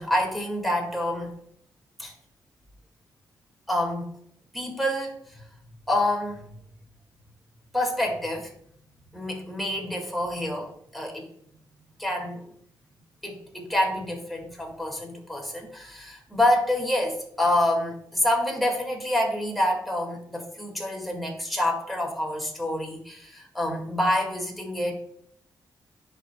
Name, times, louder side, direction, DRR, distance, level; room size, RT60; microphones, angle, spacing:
voice 1, 0.0-1.3 2.0-2.1 3.7-4.1 4.5-5.4 5.9-6.5 7.7-8.5 9.1-11.3 12.0-12.4 13.2-24.9, left 1 dB, ahead, 0 dB, 2.0 m, -27 dB
11.0 x 5.1 x 2.3 m, 0.68 s
wide cardioid pair, 120°, 8 cm